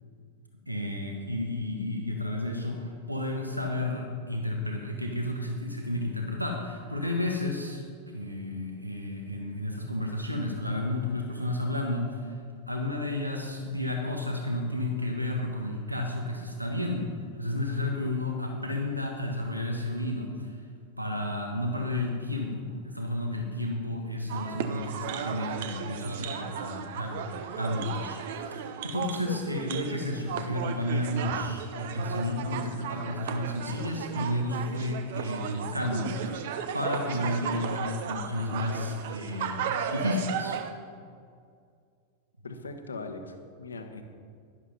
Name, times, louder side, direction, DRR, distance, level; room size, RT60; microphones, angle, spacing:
voice 1, 0.7-7.8 8.1-12.3 12.7-20.6 21.0-40.6, left 1 dB, 85° right, 2 dB, 1.3 m, -32 dB
sound 1, 24.3-40.7, right 7 dB, 55° right, 0.8 m, -35 dB
voice 2, 42.4-44.0, left 3 dB, 75° left, 7 dB, 1.1 m, -40 dB
11.5 x 11.0 x 5.5 m, 2.2 s
figure-of-eight pair, 90°, 0 cm